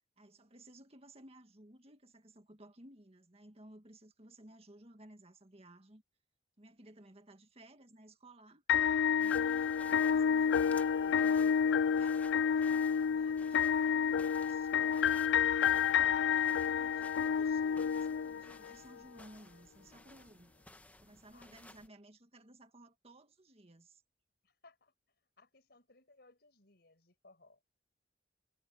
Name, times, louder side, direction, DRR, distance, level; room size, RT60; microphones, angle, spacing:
voice 1, 0.2-6.0 6.6-8.6 9.1-15.8 16.2-20.5 21.0-24.0, right 1 dB, 35° right, 1.9 m, -58 dB
sound 1, 8.7-18.7, left 7 dB, 85° left, 0.3 m, -29 dB
sound 2, 9.2-21.9, left 1 dB, 10° left, 1.2 m, -58 dB
voice 2, 16.7-17.0 21.3-21.8 24.4-24.9 25.4-27.6, left 3 dB, 65° left, 6.1 m, -64 dB
head